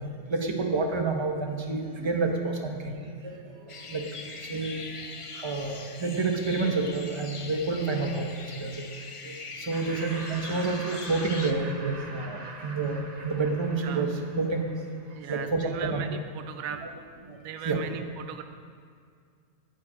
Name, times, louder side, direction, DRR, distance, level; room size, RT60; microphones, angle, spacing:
voice 1, 0.0-3.4 3.9-4.0 4.4-4.8 5.3-8.8 9.2-14.7 15.3-16.0 16.8-16.9 17.3-17.4 17.6-17.8, right 3 dB, 20° right, 3 dB, 1.0 m, -29 dB
sound 1, 3.7-11.5, left 4 dB, 40° left, 0.4 m, -42 dB
Laughter, 9.7-15.0, right 2 dB, 55° right, 1.4 m, -43 dB
voice 2, 15.1-16.8 17.4-18.4, right 9 dB, 85° right, 7 dB, 1.0 m, -38 dB
11.5 x 5.6 x 8.7 m, 2.2 s
omnidirectional pair, 1.4 m